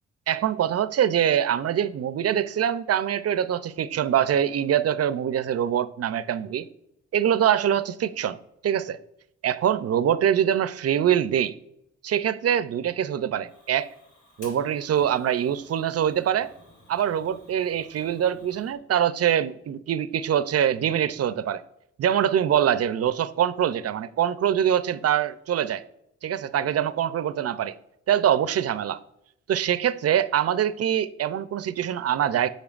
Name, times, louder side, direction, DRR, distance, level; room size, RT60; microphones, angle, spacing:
voice 1, 0.3-6.7 7.1-8.4 8.6-9.0 9.4-11.5 12.0-13.9 14.4-16.5 16.9-21.6 22.0-25.8 26.2-27.7 28.1-29.0 29.5-32.5, right 9 dB, 55° right, 0.5 m, -24 dB
Fire, 13.4-18.8, left 1 dB, 80° left, 2.3 m, -53 dB
8.6 x 5.5 x 2.4 m
cardioid pair, 60°, 29 cm